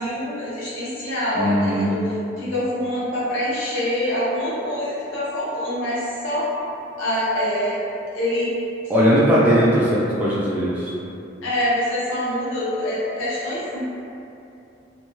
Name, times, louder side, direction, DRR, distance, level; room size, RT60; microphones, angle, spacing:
voice 1, 0.0-6.5 7.0-7.8 8.1-8.5 11.4-14.0, left 1 dB, 90° left, -9 dB, 0.9 m, -25 dB
voice 2, 1.4-2.0 8.9-10.9, equal, 10° right, -9 dB, 0.3 m, -19 dB
2.7 x 2.2 x 2.9 m, 2.7 s
head